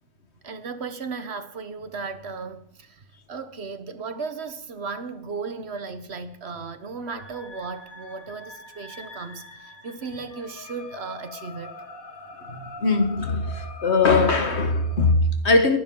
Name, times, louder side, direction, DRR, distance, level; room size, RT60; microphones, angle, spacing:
voice 1, 0.4-11.8, right 4 dB, 50° right, 1.4 m, -35 dB
sound 1, 7.0-15.1, left 3 dB, 80° left, 2.3 m, -44 dB
voice 2, 12.5-15.8, left 3 dB, 55° left, 1.6 m, -21 dB
21.5 x 11.5 x 3.9 m
omnidirectional pair, 1.4 m